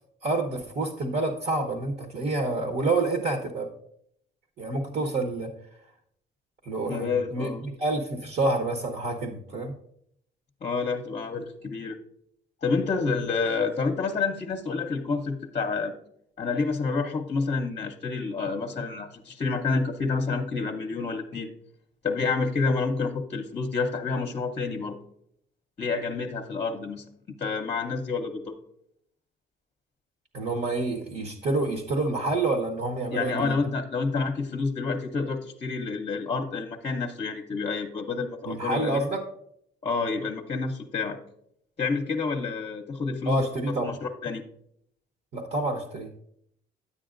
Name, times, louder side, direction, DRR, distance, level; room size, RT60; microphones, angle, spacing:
voice 1, 0.2-3.7 4.6-5.5 6.6-9.7 30.3-33.6 38.4-39.2 43.3-43.9 45.3-46.1, right 2 dB, 55° right, 5 dB, 1.0 m, -28 dB
voice 2, 6.9-7.6 10.6-12.0 12.6-15.9 16.4-21.5 22.0-25.0 25.8-27.0 27.4-28.5 33.1-39.0 39.8-41.2 41.8-44.4, left 4 dB, 35° left, 3 dB, 0.7 m, -29 dB
9.4 x 8.3 x 2.5 m, 0.72 s
cardioid pair, 90°, 20 cm